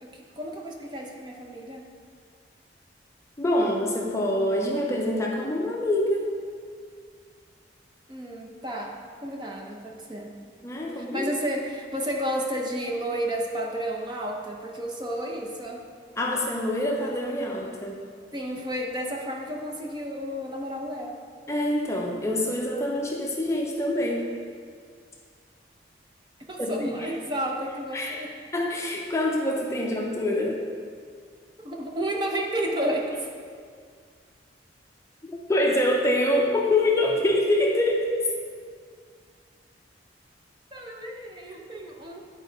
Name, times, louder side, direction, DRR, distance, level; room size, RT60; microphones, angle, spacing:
voice 1, 0.0-1.9 8.1-10.3 10.9-15.8 18.3-21.2 26.4-28.3 31.6-33.3 40.7-42.2, right 1 dB, 25° right, 0 dB, 0.7 m, -32 dB
voice 2, 3.4-6.3 10.6-11.3 16.2-18.0 21.5-24.3 26.6-26.7 27.9-30.6 35.3-38.1, left 1 dB, 15° left, -1 dB, 0.6 m, -25 dB
9.8 x 4.4 x 3.9 m, 2.1 s
head